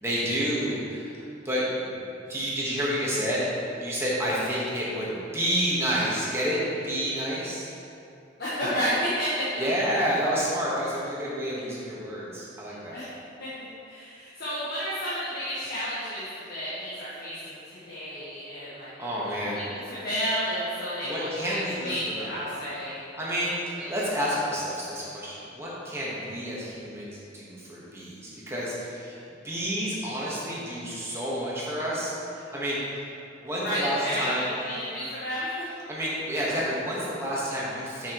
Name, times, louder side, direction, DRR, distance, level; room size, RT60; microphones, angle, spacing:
voice 1, 0.0-1.9 2.3-3.5 3.8-7.7 9.6-13.0 19.0-19.6 21.0-22.4 23.2-32.8 33.4-34.5 35.9-38.1, equal, 15° right, -7 dB, 1.3 m, -29 dB
voice 2, 8.4-9.5 12.9-13.1 13.4-13.5 13.8-18.9 19.2-23.4 23.7-23.9 33.6-35.6, equal, 60° left, -11 dB, 1.3 m, -31 dB
7.5 x 5.8 x 3.0 m, 2.6 s
head